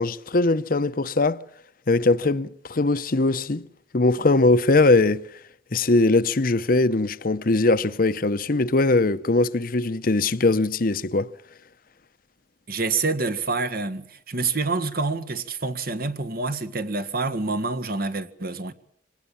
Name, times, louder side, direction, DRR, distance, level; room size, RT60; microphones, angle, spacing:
voice 1, 0.0-1.4 1.9-3.6 3.9-5.2 5.7-11.3, left 2 dB, 55° left, 0.9 m, -21 dB
voice 2, 12.7-18.7, right 3 dB, 55° right, 1.6 m, -27 dB
25.0 x 19.0 x 7.1 m
head